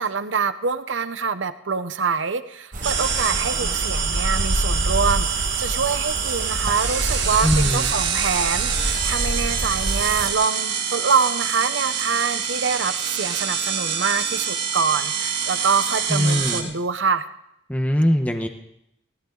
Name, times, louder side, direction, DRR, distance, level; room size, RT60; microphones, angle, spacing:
voice 1, 0.0-17.3, right 5 dB, 85° right, 12 dB, 0.9 m, -25 dB
sound 1, 2.7-10.3, right 1 dB, 45° right, 1.6 m, -27 dB
sound 2, 2.8-16.6, right 7 dB, 70° right, 2.7 m, -26 dB
voice 2, 7.4-7.9 16.1-16.7 17.7-18.5, equal, 10° left, 5 dB, 1.0 m, -21 dB
18.5 x 16.5 x 3.9 m, 0.78 s
head